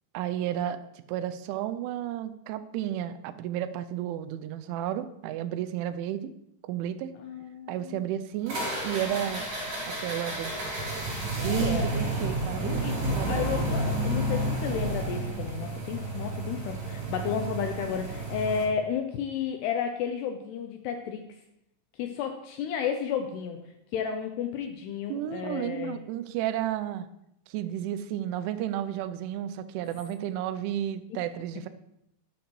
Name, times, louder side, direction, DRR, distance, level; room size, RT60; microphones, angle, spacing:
voice 1, 0.1-0.8 1.1-6.3 6.6-7.1 7.7-8.6 8.8-9.5 9.9-10.5 11.4-13.5 25.1-27.1 27.5-31.7, right 11 dB, 90° right, 12 dB, 3.1 m, -32 dB
voice 2, 7.2-8.2 11.4-11.9 12.6-21.3 21.9-23.6 23.9-26.0 31.1-31.2, left 7 dB, 80° left, 5 dB, 2.4 m, -32 dB
sound 1, 8.5-18.6, right 1 dB, 35° right, 3.7 m, -31 dB
11.5 x 10.5 x 3.1 m, 0.81 s
omnidirectional pair, 5.4 m